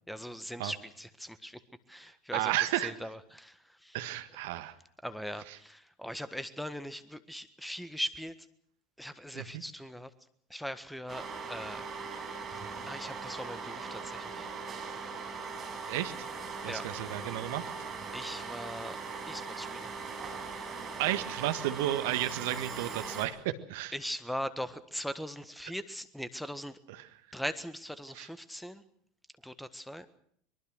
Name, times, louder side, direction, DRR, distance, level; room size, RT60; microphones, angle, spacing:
voice 1, 0.1-1.6 1.9-4.0 5.0-8.3 9.0-10.1 10.5-11.9 12.9-14.5 16.7-16.9 18.1-19.0 19.3-20.0 23.9-26.8 27.3-28.8 29.4-30.1, equal, ahead, 14 dB, 1.5 m, -40 dB
voice 2, 2.3-2.9 3.9-4.7 9.4-9.5 15.9-16.3 16.6-17.6 21.0-23.4 23.7-23.9 28.2-28.3, right 14 dB, 60° right, 10 dB, 1.6 m, -32 dB
sound 1, 11.1-23.3, right 5 dB, 30° right, 6.5 m, -40 dB
23.5 x 23.0 x 6.4 m, 0.65 s
figure-of-eight pair, 75°, 0 cm